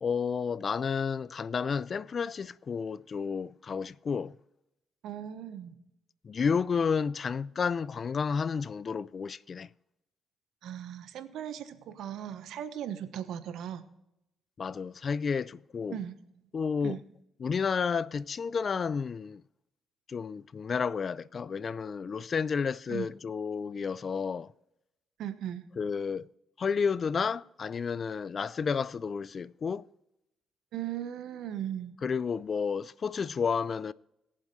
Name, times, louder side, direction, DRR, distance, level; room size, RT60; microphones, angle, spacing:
voice 1, 0.0-4.3 6.2-9.7 14.6-16.0 16.5-17.0 17.4-19.4 20.1-24.5 25.8-26.3 26.6-29.8 32.0-33.9, left 6 dB, 45° left, 0.4 m, -31 dB
voice 2, 5.0-5.8 10.6-13.8 15.9-16.2 16.8-17.0 22.9-23.1 25.2-25.7 30.7-31.9, right 10 dB, 80° right, 1.1 m, -38 dB
21.5 x 7.3 x 3.2 m
cardioid pair, 90°, 0 cm